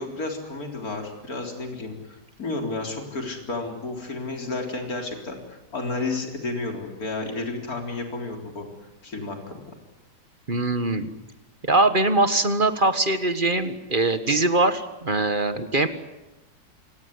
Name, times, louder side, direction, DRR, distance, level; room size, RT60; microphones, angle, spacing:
voice 1, 0.0-8.7 9.0-9.6, left 3 dB, 55° left, 3 dB, 4.4 m, -32 dB
voice 2, 10.5-11.1 11.6-15.9, right 2 dB, 30° right, 10 dB, 1.6 m, -22 dB
28.0 x 17.5 x 9.7 m, 1.0 s
omnidirectional pair, 1.9 m